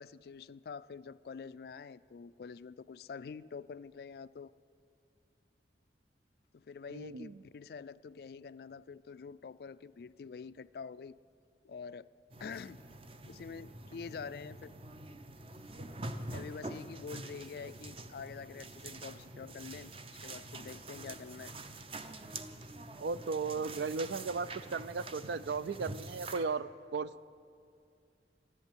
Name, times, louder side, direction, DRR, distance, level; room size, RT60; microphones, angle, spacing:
voice 1, 0.0-4.5 6.5-11.2 11.6-12.1 12.4-12.8 13.3-14.7 16.3-19.9 20.2-21.5, left 5 dB, 55° left, 17 dB, 0.3 m, -46 dB
voice 2, 6.9-7.4 23.0-27.1, right 4 dB, 70° right, 16 dB, 0.4 m, -36 dB
sound 1, 12.3-26.5, right 2 dB, 30° right, 0.6 m, -46 dB
14.0 x 11.0 x 9.0 m, 2.4 s
head